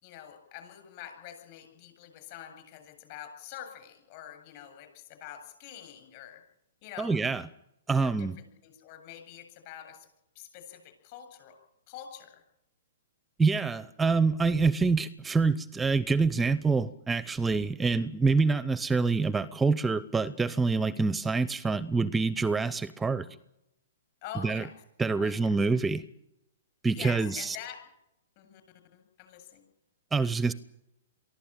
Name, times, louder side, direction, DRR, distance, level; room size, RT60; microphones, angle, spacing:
voice 1, 0.0-6.4 6.8-7.2 8.0-10.1 10.3-11.6 11.9-12.4 23.1-23.3 24.2-24.7 25.2-25.6 27.0-27.8 28.4-28.6 28.9-29.7, left 10 dB, 45° left, 7 dB, 7.7 m, -46 dB
voice 2, 7.0-7.4 7.9-8.4 13.4-23.3 24.4-24.6 25.0-26.0 26.8-27.6 30.1-30.5, right 4 dB, 10° right, 17 dB, 0.7 m, -26 dB
23.5 x 14.5 x 9.1 m, 0.83 s
hypercardioid pair, 135°, 0 cm